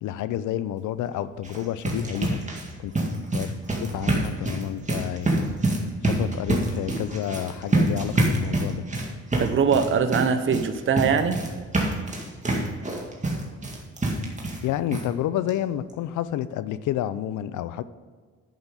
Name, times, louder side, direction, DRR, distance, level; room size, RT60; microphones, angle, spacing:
voice 1, 0.0-2.4 2.8-2.9 3.3-3.5 3.8-5.5 6.0-8.8 14.6-17.8, left 12 dB, 80° left, 15 dB, 0.6 m, -29 dB
sound 1, 1.3-14.7 14.9-15.0 15.5-15.6 15.9-16.0, right 2 dB, 25° right, 2.1 m, -27 dB
voice 2, 9.4-11.4, right 6 dB, 40° right, 8 dB, 0.8 m, -22 dB
11.0 x 5.6 x 5.2 m, 1.5 s
cardioid pair, 90°, 30 cm